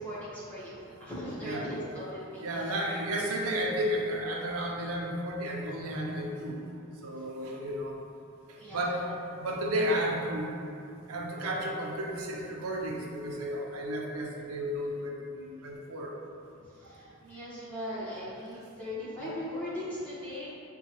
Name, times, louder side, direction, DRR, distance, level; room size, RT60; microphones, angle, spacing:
voice 1, 0.0-2.7 8.5-9.2 16.6-20.5, left 1 dB, 5° left, -10 dB, 0.9 m, -39 dB
voice 2, 2.4-6.6 7.0-8.0 8.7-9.0 9.4-10.6 11.1-16.1, equal, 85° right, -1 dB, 0.5 m, -32 dB
5.4 x 2.2 x 2.9 m, 2.7 s
head